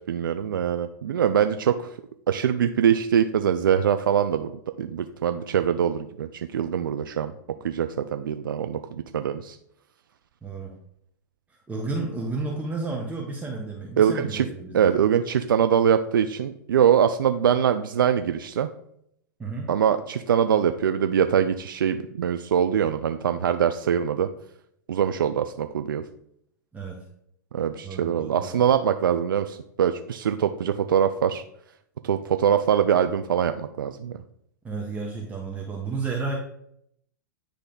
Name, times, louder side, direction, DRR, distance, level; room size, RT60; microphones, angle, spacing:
voice 1, 0.1-2.0 2.3-4.5 4.8-7.3 7.6-9.6 14.0-14.5 14.7-18.7 19.7-24.3 24.9-26.0 27.5-31.4 32.0-34.1, right 8 dB, 85° right, 8 dB, 0.4 m, -23 dB
voice 2, 10.4-10.8 11.7-14.9 19.4-19.7 26.7-27.0 27.8-28.6 34.6-36.3, right 3 dB, 15° right, -1 dB, 1.1 m, -32 dB
9.9 x 3.3 x 3.9 m, 0.73 s
hypercardioid pair, 110°, 11 cm